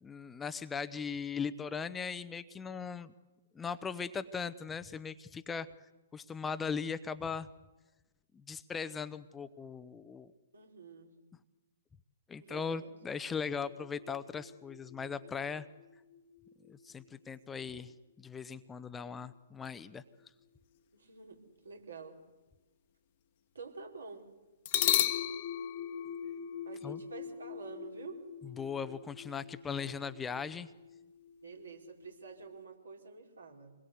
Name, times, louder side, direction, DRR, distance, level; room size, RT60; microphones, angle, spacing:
voice 1, 0.0-3.1 3.5-5.7 6.1-7.5 8.3-10.3 12.3-15.7 16.7-20.0 26.8-27.0 28.4-30.7, left 6 dB, 10° left, 12 dB, 0.8 m, -39 dB
voice 2, 10.5-11.1 12.4-12.9 20.9-22.2 23.5-24.3 26.6-28.2 31.4-33.7, right 4 dB, 75° right, 2 dB, 4.7 m, -48 dB
sound 1, 13.5-17.1 24.7-32.5, left 11 dB, 45° left, 1.2 m, -38 dB
26.0 x 21.0 x 8.1 m, 1.1 s
figure-of-eight pair, 120°, 0 cm